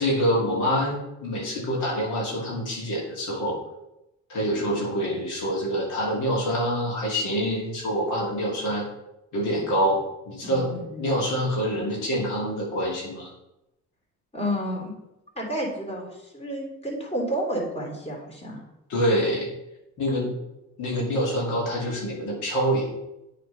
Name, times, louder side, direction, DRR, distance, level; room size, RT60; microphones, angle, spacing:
voice 1, 0.0-3.6 4.3-8.8 9.3-13.3 18.9-19.5 20.0-20.3 20.8-22.9, equal, 80° left, -4 dB, 2.6 m, -26 dB
voice 2, 10.4-10.8 14.3-14.8 15.3-18.6, equal, 20° left, -2 dB, 3.0 m, -30 dB
8.2 x 4.2 x 5.5 m, 0.89 s
cardioid pair, 90°, 30 cm